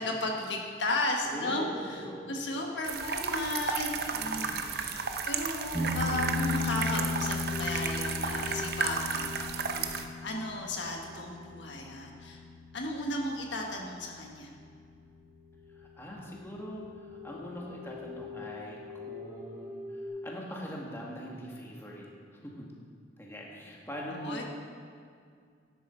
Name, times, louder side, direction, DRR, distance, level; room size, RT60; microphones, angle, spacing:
voice 1, 0.0-9.3 9.7-12.4 12.7-14.5 24.1-24.4, left 1 dB, 75° left, 1 dB, 1.3 m, -35 dB
sound 1, 1.3-3.6 6.5-12.1 12.9-13.0 13.3-13.5 14.1-14.2 14.4-14.6 14.9-20.1, left 2 dB, 35° left, 3.4 m, -47 dB
voice 2, 1.3-2.3 3.9-4.7 15.7-22.1 22.4-22.7 23.2-24.4, equal, 15° left, -3 dB, 1.6 m, -42 dB
sound 2, 2.8-10.1, right 5 dB, 55° right, 0.7 m, -33 dB
sound 3, 5.7-14.8, left 3 dB, 15° right, 3.4 m, -36 dB
11.0 x 10.5 x 4.4 m, 2.2 s
head